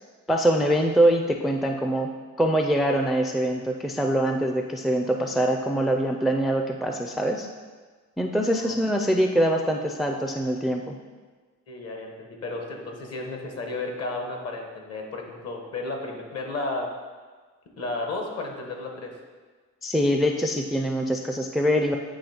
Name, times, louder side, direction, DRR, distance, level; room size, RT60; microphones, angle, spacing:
voice 1, 0.3-2.1 2.4-7.5 8.2-11.0 19.8-21.9, equal, ahead, 3 dB, 0.4 m, -23 dB
voice 2, 11.7-16.9 17.8-19.2, left 2 dB, 55° left, 2 dB, 1.3 m, -33 dB
8.5 x 3.1 x 4.3 m, 1.4 s
cardioid pair, 90°, 30 cm